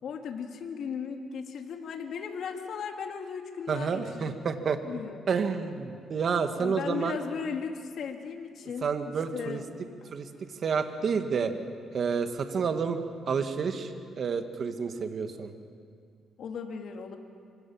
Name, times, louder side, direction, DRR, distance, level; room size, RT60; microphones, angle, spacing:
voice 1, 0.0-4.5 4.8-5.3 6.6-9.7 16.4-17.2, left 6 dB, 65° left, 4 dB, 2.3 m, -37 dB
voice 2, 3.7-4.8 5.3-7.2 8.8-9.6 10.1-10.3 10.6-11.5 11.9-13.0 13.3-15.5, right 5 dB, 50° right, 7 dB, 1.9 m, -29 dB
25.5 x 24.5 x 7.3 m, 2.3 s
cardioid pair, 110°, 0 cm